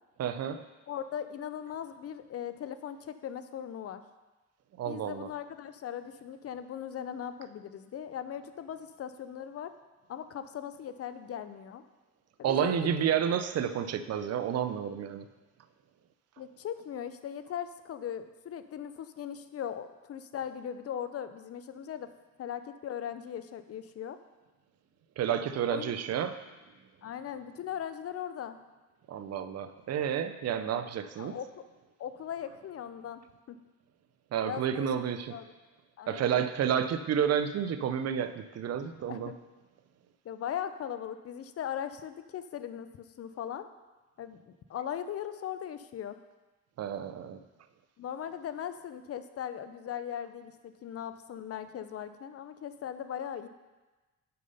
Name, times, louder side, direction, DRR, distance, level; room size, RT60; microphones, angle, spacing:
voice 1, 0.2-0.6 4.8-5.3 12.4-15.3 25.2-26.4 29.1-31.4 34.3-35.3 36.1-39.3 46.8-47.4, right 8 dB, 55° right, 11 dB, 0.6 m, -30 dB
voice 2, 0.9-4.0 4.9-9.7 10.1-11.8 12.4-12.8 16.4-22.1 22.4-24.2 25.7-25.9 27.0-28.6 31.2-31.5 32.0-33.2 33.5-33.6 34.4-34.9 35.3-35.5 36.0-36.5 39.1-39.4 40.2-43.7 44.2-46.2 48.0-53.5, left 9 dB, 50° left, 11 dB, 0.5 m, -39 dB
6.7 x 5.5 x 5.5 m, 1.2 s
cardioid pair, 90°, 30 cm